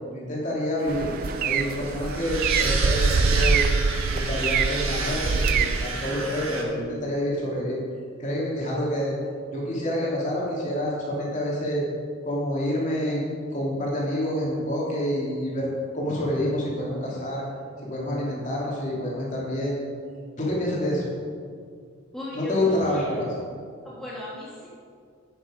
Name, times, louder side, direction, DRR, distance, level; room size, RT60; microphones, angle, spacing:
voice 1, 0.1-1.1 1.4-3.6 4.1-7.8 8.2-9.1 9.5-11.8 12.2-13.2 13.5-17.4 17.8-19.8 20.4-21.0 22.3-23.2, left 1 dB, 35° left, -5 dB, 2.9 m, -27 dB
sound 1, 0.8-6.6, right 4 dB, 90° right, 1.5 m, -31 dB
sound 2, 0.9-5.8, right 5 dB, 40° right, 0.3 m, -24 dB
voice 2, 22.1-23.0 23.8-24.7, left 1 dB, ahead, -8 dB, 1.6 m, -37 dB
9.5 x 9.0 x 5.1 m, 2.2 s
head